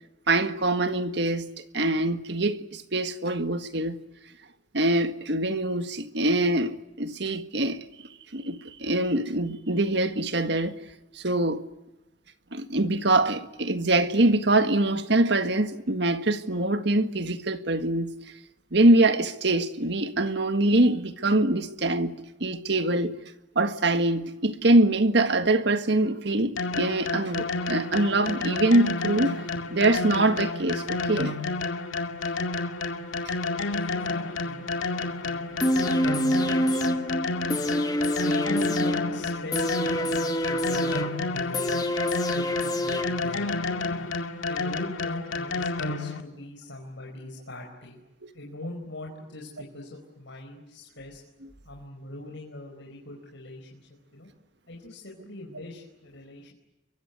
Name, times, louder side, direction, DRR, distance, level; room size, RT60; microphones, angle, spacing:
voice 1, 0.3-4.0 4.7-7.8 8.3-10.8 11.1-11.6 12.5-18.1 18.7-22.1 22.4-23.2 23.5-29.4 29.7-31.3 36.7-36.8, right 2 dB, 60° right, 1.7 m, -24 dB
sound 1, 26.6-46.2, left 3 dB, 85° left, 2.2 m, -30 dB
voice 2, 33.3-37.7 38.2-41.8 42.3-44.0 44.4-48.0 48.3-51.2 51.6-54.3 54.7-56.5, left 2 dB, 70° left, 4.8 m, -41 dB
sound 2, 35.6-43.6 43.9-44.0, equal, 20° left, 1.7 m, -27 dB
29.5 x 24.0 x 8.2 m
head